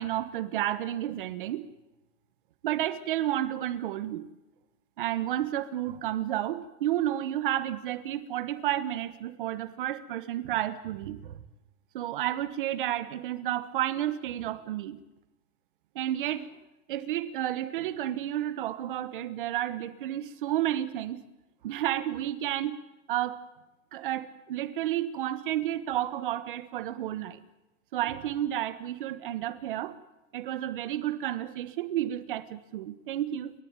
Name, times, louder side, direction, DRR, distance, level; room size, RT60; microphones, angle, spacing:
voice 1, 0.0-1.7 2.6-4.3 5.0-11.4 11.9-15.0 15.9-16.5 16.9-21.2 21.6-22.8 23.1-23.4 23.9-27.4 27.9-30.0 30.3-33.5, right 12 dB, 40° right, 1.3 m, -31 dB
29.5 x 14.0 x 9.0 m
hypercardioid pair, 175°, 41 cm